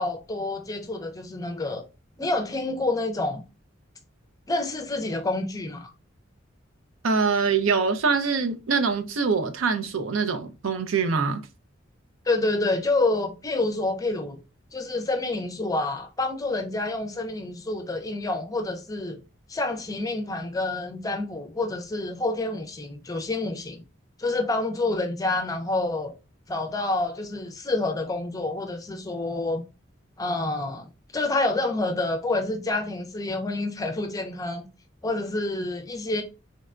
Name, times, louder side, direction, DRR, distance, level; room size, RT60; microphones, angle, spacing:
voice 1, 0.0-1.9 2.2-3.4 4.5-5.9 12.3-14.4 14.7-19.2 19.5-23.8 24.2-26.1 26.5-29.7 30.2-30.9 31.1-34.7 35.0-36.2, left 2 dB, 20° left, 0.5 m, -28 dB
voice 2, 7.0-11.4, right 5 dB, 85° right, 0.5 m, -24 dB
3.9 x 2.2 x 2.4 m
head